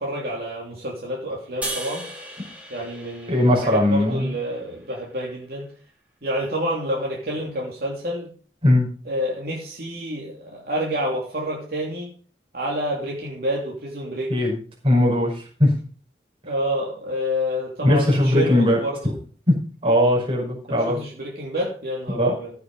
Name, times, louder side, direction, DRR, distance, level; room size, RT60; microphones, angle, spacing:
voice 1, 0.0-2.0 2.7-5.7 6.2-8.3 9.0-12.1 12.5-14.3 16.4-19.1 20.7-22.5, equal, 60° right, -3 dB, 3.2 m, -28 dB
sound 1, 1.6-4.9, right 1 dB, 10° right, 3.6 m, -36 dB
voice 2, 3.3-4.3 8.6-8.9 14.3-14.6 14.8-15.7 17.8-18.8 19.5-19.6 19.8-21.0 22.1-22.3, left 1 dB, 30° right, -2 dB, 5.7 m, -19 dB
15.5 x 7.0 x 5.5 m, 0.42 s
head